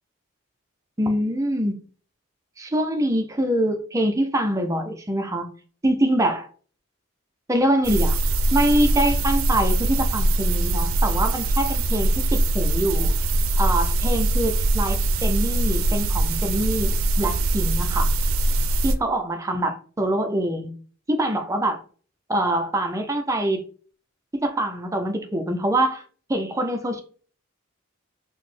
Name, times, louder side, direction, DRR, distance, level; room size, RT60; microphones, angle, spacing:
voice 1, 1.0-1.7 2.6-5.5 5.8-6.5 7.5-8.2 8.5-13.1 13.6-15.0 15.2-18.1 18.8-20.7 21.1-21.8 22.3-23.7 24.4-26.0 26.3-27.0, right 1 dB, 15° right, 0.4 m, -24 dB
sound 1, 7.8-19.0, right 2 dB, 80° right, 0.4 m, -22 dB
3.9 x 2.0 x 3.2 m
head